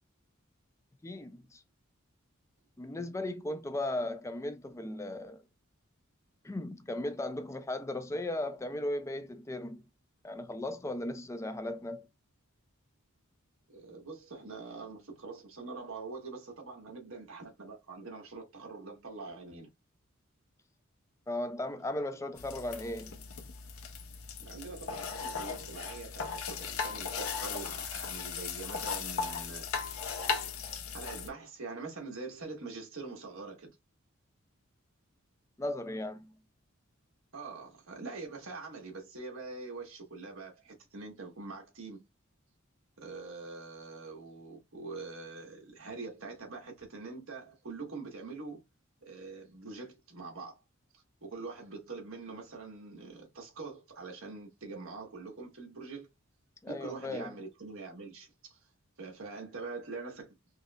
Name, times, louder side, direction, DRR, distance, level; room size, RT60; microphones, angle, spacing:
voice 1, 1.0-1.6 2.8-5.4 6.4-9.8 10.2-12.1 21.3-23.2 35.6-36.3 56.6-57.3, left 1 dB, 15° left, 0.4 m, -36 dB
voice 2, 13.7-19.7 24.4-29.7 30.9-33.7 37.3-42.0 43.0-48.6 49.0-50.6 50.9-56.1 56.7-58.6 59.0-60.4, right 3 dB, 70° right, 1.3 m, -44 dB
sound 1, 22.4-31.3, left 6 dB, 85° left, 0.6 m, -37 dB
5.3 x 2.0 x 2.2 m
head